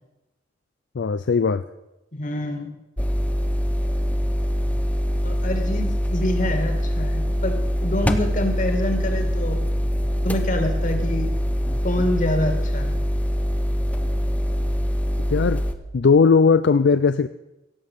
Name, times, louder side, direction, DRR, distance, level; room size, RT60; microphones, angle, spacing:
voice 1, 1.0-1.6 15.3-15.6 15.9-17.3, left 5 dB, 65° left, 12 dB, 0.4 m, -18 dB
voice 2, 2.1-2.7 5.2-9.6 10.2-11.3 11.8-13.0, left 1 dB, 45° left, 5 dB, 2.2 m, -26 dB
sound 1, 3.0-15.7, equal, 10° left, 0.8 m, -23 dB
17.0 x 7.6 x 6.7 m, 0.95 s
head